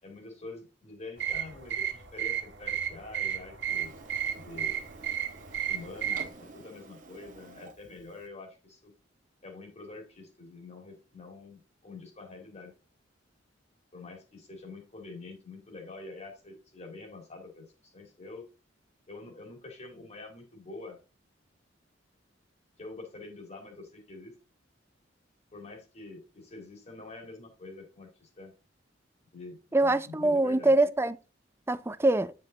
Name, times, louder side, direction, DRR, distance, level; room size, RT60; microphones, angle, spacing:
voice 1, 0.0-3.9 4.3-4.8 5.7-8.9 9.4-12.7 13.9-18.5 19.1-21.0 22.8-24.3 25.5-28.5 29.3-30.7, left 3 dB, 35° left, 2.5 m, -46 dB
sound 1, 1.2-6.3, right 9 dB, 65° right, 1.4 m, -33 dB
Printer, 3.7-8.3, right 3 dB, 45° right, 1.3 m, -50 dB
voice 2, 29.7-31.2 31.7-32.3, right 2 dB, 15° right, 0.4 m, -24 dB
9.3 x 5.4 x 3.9 m
head